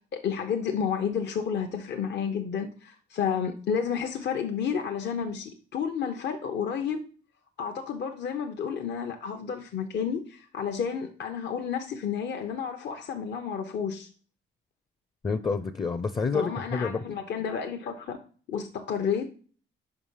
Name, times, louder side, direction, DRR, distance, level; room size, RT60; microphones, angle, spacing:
voice 1, 0.1-7.0 7.6-14.1 16.3-18.2 18.5-19.3, left 7 dB, 60° left, 0.8 m, -31 dB
voice 2, 15.2-17.0, left 4 dB, 25° left, 0.5 m, -28 dB
5.2 x 4.9 x 5.6 m
cardioid pair, 90°, 20 cm